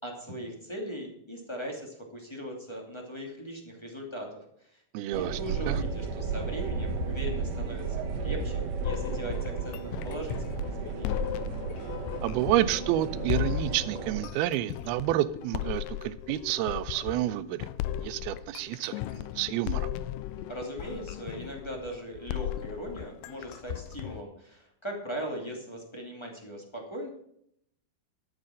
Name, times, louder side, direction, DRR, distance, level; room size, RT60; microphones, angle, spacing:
voice 1, 0.0-4.8 5.1-11.2 20.5-27.1, equal, 10° left, 0 dB, 1.8 m, -39 dB
voice 2, 4.9-5.8 12.2-17.7 18.0-19.9, right 14 dB, 90° right, 14 dB, 2.6 m, -29 dB
sound 1, 5.1-14.2, right 5 dB, 65° right, 2.7 m, -34 dB
sound 2, 8.8-24.2, left 13 dB, 85° left, 1.8 m, -36 dB
12.0 x 7.4 x 6.3 m, 0.70 s
omnidirectional pair, 4.4 m